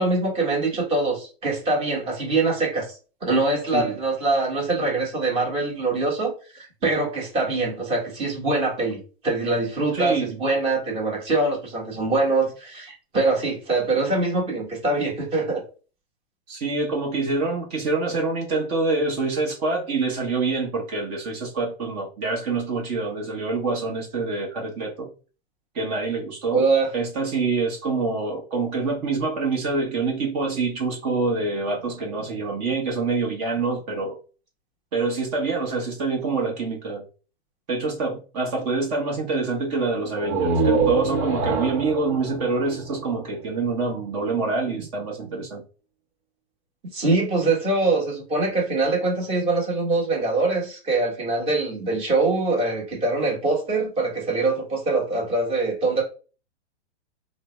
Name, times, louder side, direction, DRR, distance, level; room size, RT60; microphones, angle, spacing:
voice 1, 0.0-2.9 3.2-15.6 26.5-26.9 46.9-56.0, right 3 dB, 15° right, 1.1 m, -23 dB
voice 2, 9.9-10.4 16.5-25.1 25.7-26.7 26.9-34.2 34.9-37.0 37.7-45.6, right 3 dB, 35° right, 1.0 m, -26 dB
sound 1, 40.1-43.8, right 4 dB, 85° right, 0.9 m, -25 dB
3.3 x 2.1 x 3.0 m
hypercardioid pair, 150°, 33 cm